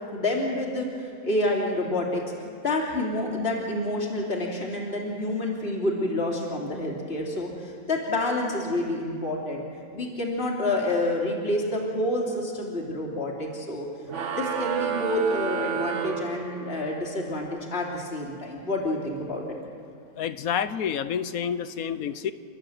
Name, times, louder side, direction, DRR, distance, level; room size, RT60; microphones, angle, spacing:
voice 1, 0.1-2.2 2.6-9.6 9.9-13.9 14.3-19.4, left 1 dB, 40° left, -2 dB, 3.1 m, -28 dB
sound 1, 14.1-17.0, right 7 dB, 55° right, 1.4 m, -30 dB
voice 2, 20.2-22.3, left 8 dB, 75° left, 13 dB, 1.2 m, -29 dB
29.5 x 13.0 x 7.8 m, 2.5 s
omnidirectional pair, 1.5 m